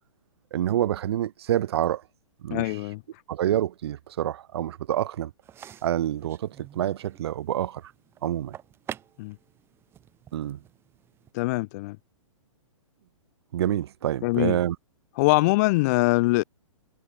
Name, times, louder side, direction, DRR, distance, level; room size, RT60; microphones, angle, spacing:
voice 1, 0.5-2.0 2.4-2.8 3.3-5.3 5.8-7.9 8.2-8.6 10.3-10.6 13.5-14.8, right 11 dB, 50° right, 1.7 m, -27 dB
voice 2, 2.5-3.0 9.2-9.3 11.3-12.0 14.2-14.6 15.2-16.4, left 23 dB, 30° left, 1.3 m, -23 dB
sound 1, 5.4-11.3, right 10 dB, 15° right, 3.7 m, -47 dB
hypercardioid pair, 165°, 17 cm